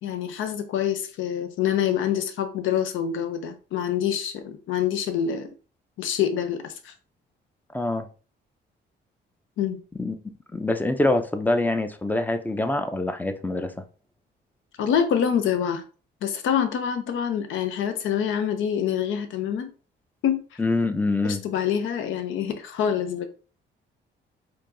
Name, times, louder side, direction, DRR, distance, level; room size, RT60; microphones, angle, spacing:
voice 1, 0.0-5.5 6.0-6.9 9.6-9.8 14.8-15.8 16.2-19.7 20.2-20.6 21.2-23.3, left 8 dB, 80° left, 0.6 m, -26 dB
voice 2, 7.7-8.1 10.0-10.1 10.5-13.7 20.6-21.4, left 2 dB, 10° left, 0.5 m, -25 dB
4.4 x 2.7 x 2.6 m
cardioid pair, 90°, 20 cm